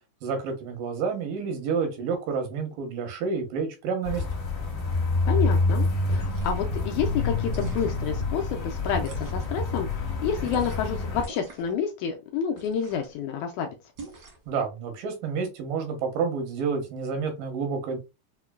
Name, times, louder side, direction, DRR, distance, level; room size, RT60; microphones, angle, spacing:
voice 1, 0.2-4.2 14.5-18.0, right 5 dB, 85° right, 4 dB, 2.6 m, -29 dB
sound 1, 4.0-11.2, left 3 dB, 65° left, 0.8 m, -27 dB
voice 2, 5.3-13.7, left 7 dB, 80° left, 4 dB, 1.7 m, -29 dB
sound 2, 6.0-6.7 7.4-8.1 9.0-9.6 10.4-10.9 11.2-11.8 12.5-13.1 14.0-14.5, right 3 dB, 70° right, 1.0 m, -40 dB
5.6 x 2.2 x 2.3 m, 0.27 s
omnidirectional pair, 3.8 m